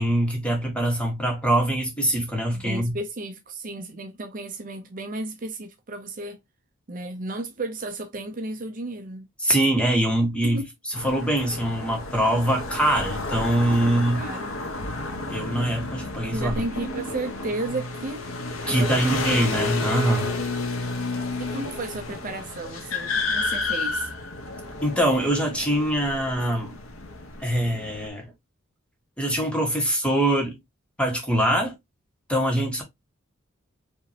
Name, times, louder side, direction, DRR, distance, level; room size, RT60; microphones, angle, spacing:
voice 1, 0.0-3.0 9.4-10.6 10.9-14.3 15.3-16.5 18.7-20.3 24.8-26.8 27.4-28.3 29.2-30.6 31.0-31.8 32.3-32.8, right 1 dB, 5° left, 1.7 m, -23 dB
voice 2, 2.6-6.4 6.9-9.3 10.4-10.6 13.8-14.5 16.3-18.2 18.6-19.2 21.4-24.1, right 2 dB, 40° right, 0.6 m, -33 dB
sound 1, 10.9-28.1, left 3 dB, 90° left, 1.2 m, -31 dB
5.5 x 2.9 x 2.9 m
head